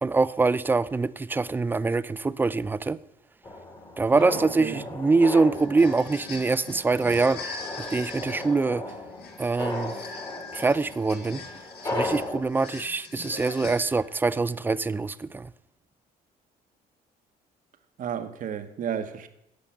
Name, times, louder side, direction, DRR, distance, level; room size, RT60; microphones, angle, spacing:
voice 1, 0.0-3.0 4.0-8.8 9.4-10.0 10.5-11.4 11.9-15.5, right 3 dB, 10° right, 0.3 m, -24 dB
sound 1, 3.4-12.4, left 2 dB, 25° left, 1.6 m, -36 dB
voice 2, 4.1-4.8 18.0-19.3, right 8 dB, 50° right, 0.9 m, -33 dB
sound 2, 5.5-14.2, left 4 dB, 75° left, 1.9 m, -42 dB
10.0 x 5.2 x 7.1 m
cardioid pair, 110°, 17 cm